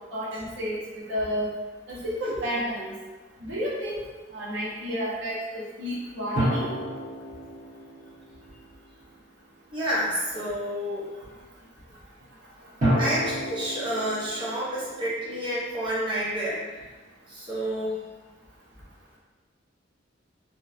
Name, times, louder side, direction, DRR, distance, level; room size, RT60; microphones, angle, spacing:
voice 1, 0.1-1.5 1.9-2.9 3.4-4.0 4.3-6.7, equal, 75° right, -5 dB, 0.7 m, -31 dB
sound 1, 6.4-9.2 12.8-16.2, equal, 45° right, 1.0 m, -31 dB
voice 2, 9.7-11.1 13.0-16.7 17.3-18.0, equal, 25° right, -7 dB, 0.6 m, -29 dB
2.8 x 2.1 x 2.3 m, 1.3 s
head